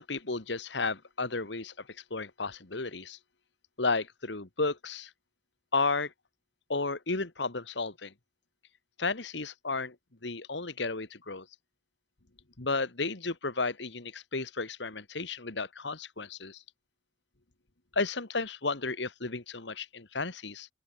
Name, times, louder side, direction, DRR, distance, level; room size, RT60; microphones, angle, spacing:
voice 1, 0.0-3.2 3.8-5.1 5.7-6.1 6.7-8.1 9.0-10.0 10.2-11.5 12.6-16.6 17.9-20.7, left 3 dB, 70° left, 1.8 m, -33 dB
open air
head